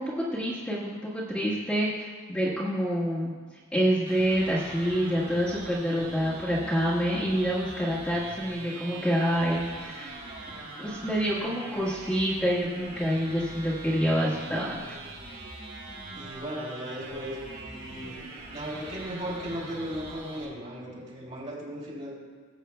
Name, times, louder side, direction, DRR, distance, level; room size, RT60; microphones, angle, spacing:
voice 1, 0.0-3.3 3.7-10.1 10.8-14.8, equal, 5° left, -9 dB, 1.6 m, -27 dB
sound 1, 4.1-20.5, right 2 dB, 75° right, 3.0 m, -42 dB
voice 2, 16.1-18.2 18.5-22.2, equal, 35° right, -4 dB, 3.0 m, -37 dB
19.5 x 8.3 x 2.3 m, 1.5 s
head